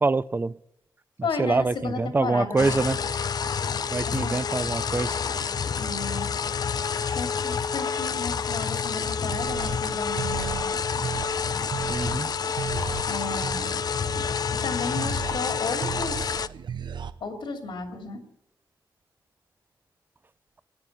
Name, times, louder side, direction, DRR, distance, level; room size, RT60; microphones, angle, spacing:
voice 1, 0.0-0.5 1.4-3.0 3.9-5.2 11.9-12.3, right 3 dB, 25° right, 18 dB, 0.5 m, -25 dB
voice 2, 1.2-2.7 4.1-4.4 5.8-6.3 7.1-10.7 13.1-13.7 14.5-16.4 17.2-18.2, left 4 dB, 80° left, 4 dB, 2.8 m, -33 dB
sound 1, 2.6-16.5, left 6 dB, 55° left, 0.5 m, -28 dB
sound 2, 8.9-17.1, right 7 dB, 65° right, 0.6 m, -36 dB
15.0 x 9.7 x 8.8 m, 0.77 s
wide cardioid pair, 95°, 8 cm